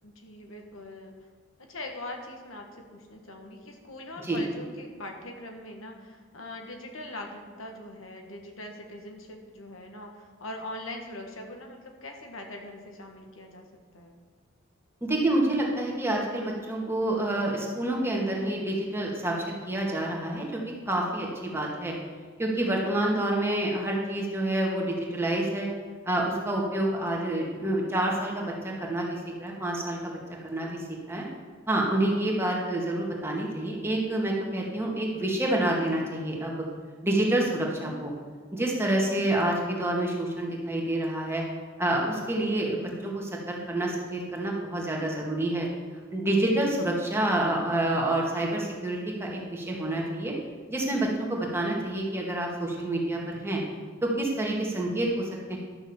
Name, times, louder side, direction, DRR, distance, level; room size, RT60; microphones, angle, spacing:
voice 1, 0.0-1.1 1.6-13.7 13.9-14.2, left 1 dB, 80° left, 3 dB, 1.6 m, -42 dB
voice 2, 15.0-20.6 20.9-21.9 22.4-25.7 26.1-30.2 30.4-31.2 31.7-36.5 37.0-38.1 38.5-41.4 41.8-45.7 46.1-50.3 50.7-53.6 54.0-55.6, right 1 dB, 10° right, -2 dB, 1.9 m, -28 dB
11.5 x 6.2 x 7.1 m, 1.5 s
head